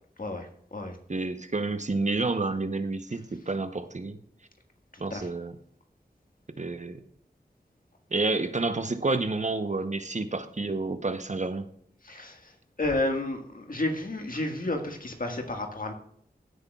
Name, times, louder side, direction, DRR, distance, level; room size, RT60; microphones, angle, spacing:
voice 1, 0.2-1.0 5.1-5.3 12.0-15.9, left 2 dB, 55° left, 3 dB, 1.7 m, -31 dB
voice 2, 1.1-4.2 5.0-5.6 6.6-7.0 8.1-11.7, right 3 dB, 45° right, 9 dB, 0.8 m, -29 dB
15.5 x 8.0 x 2.4 m, 0.66 s
wide cardioid pair, 60°, 17 cm